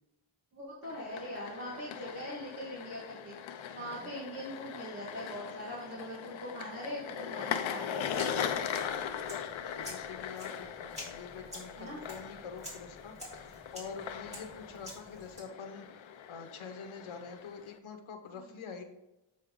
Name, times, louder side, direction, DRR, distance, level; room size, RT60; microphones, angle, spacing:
voice 1, 0.5-3.3 3.7-8.4 11.8-12.0, equal, 30° right, -6 dB, 1.7 m, -42 dB
sound 1, 0.8-17.8, left 8 dB, 70° left, 0.7 m, -40 dB
voice 2, 3.8-4.1 9.5-18.8, left 5 dB, 90° left, 6 dB, 1.1 m, -46 dB
sound 2, 8.1-15.4, left 1 dB, 15° right, 2.4 m, -49 dB
7.6 x 5.5 x 3.7 m, 0.95 s
wide cardioid pair, 170°, 47 cm